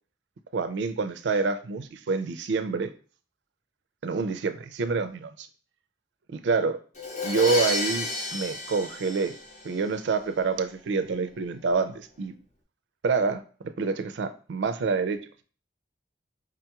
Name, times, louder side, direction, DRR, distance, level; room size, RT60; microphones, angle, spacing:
voice 1, 0.5-2.9 4.0-5.5 6.3-6.8 7.2-9.3 9.6-12.3 13.0-15.4, right 4 dB, 80° right, 10 dB, 0.4 m, -27 dB
Crash cymbal, 7.0-9.9, left 2 dB, 40° left, 0.6 m, -31 dB
4.9 x 2.3 x 2.8 m, 0.40 s
head